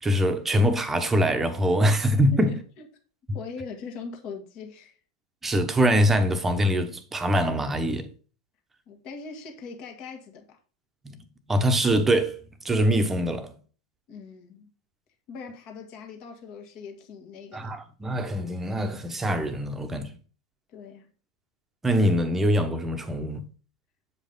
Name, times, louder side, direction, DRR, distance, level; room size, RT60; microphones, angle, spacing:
voice 1, 0.0-2.6 5.4-8.1 11.0-12.4 12.6-13.5 17.5-20.1 21.8-23.4, equal, 10° right, 1.1 m, -23 dB
voice 2, 2.3-2.9 3.3-5.0 8.9-10.6 14.1-14.7 15.3-17.7 20.7-21.1, left 5 dB, 40° left, 1.7 m, -41 dB
8.1 x 5.1 x 3.9 m
figure-of-eight pair, 90°, 2 cm